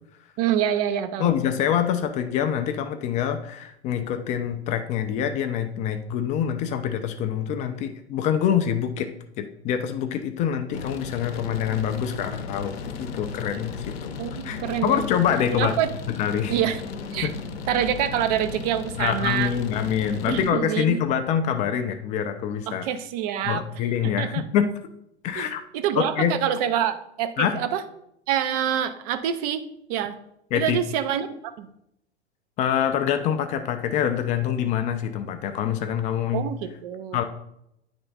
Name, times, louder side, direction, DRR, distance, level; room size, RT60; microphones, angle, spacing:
voice 1, 0.4-1.3 14.2-15.0 15.5-15.9 16.5-16.8 17.1-17.3 17.7-19.5 20.3-21.0 22.7-23.6 24.0-24.4 25.4-25.5 25.7-27.8 28.3-29.6 29.9-30.2 30.5-31.7 36.3-37.2, right 10 dB, 35° right, 10 dB, 0.6 m, -26 dB
voice 2, 1.2-9.1 9.4-14.1 14.4-15.8 16.1-16.6 17.2-17.3 19.0-22.9 23.4-24.7 25.2-25.6 26.0-26.4 27.4-27.6 30.5-30.8 32.6-36.5 37.1-37.2, left 9 dB, 20° left, 8 dB, 0.4 m, -25 dB
sound 1, 10.7-20.5, left 5 dB, 65° left, 0.8 m, -35 dB
9.5 x 3.5 x 4.0 m, 0.78 s
figure-of-eight pair, 95°, 34 cm